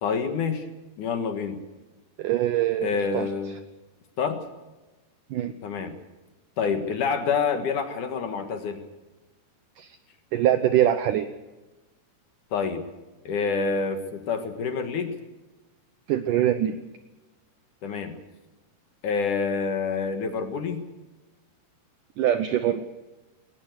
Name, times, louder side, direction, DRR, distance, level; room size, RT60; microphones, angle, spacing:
voice 1, 0.0-0.7 1.0-1.6 2.8-3.6 4.2-4.4 5.6-5.9 6.6-8.8 12.5-12.8 13.2-15.1 17.8-18.2 19.0-20.8, left 5 dB, 60° left, 7 dB, 2.6 m, -27 dB
voice 2, 2.2-3.3 5.3-5.5 9.8-10.0 10.3-11.3 16.1-16.8 22.2-22.8, right 11 dB, 80° right, 10 dB, 1.9 m, -23 dB
21.0 x 18.5 x 8.1 m, 1.1 s
omnidirectional pair, 4.8 m